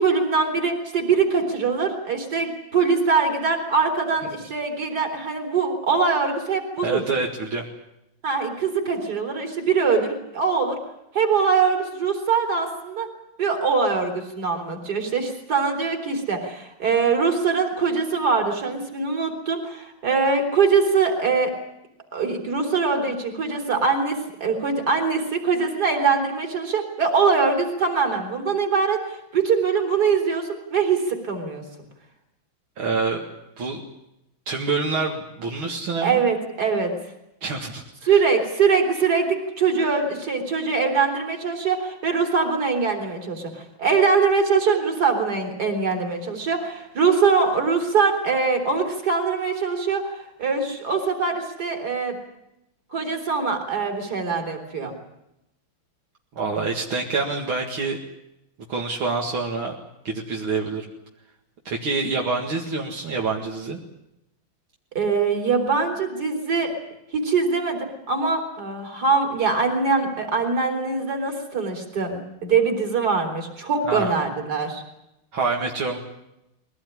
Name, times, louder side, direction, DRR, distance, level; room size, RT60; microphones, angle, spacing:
voice 1, 0.0-7.0 8.2-10.8 11.1-13.1 13.4-21.5 22.1-31.6 36.0-36.9 38.0-52.2 52.9-54.9 64.9-66.7 67.1-74.8, right 5 dB, 45° right, 4 dB, 4.1 m, -23 dB
voice 2, 6.8-7.6 32.8-33.2 33.6-33.8 34.5-36.2 37.4-38.2 56.3-58.0 58.7-59.7 60.0-60.8 61.7-63.8 73.9-74.1 75.3-76.0, right 4 dB, 70° right, 0 dB, 2.9 m, -26 dB
22.0 x 17.5 x 9.9 m, 0.86 s
omnidirectional pair, 2.3 m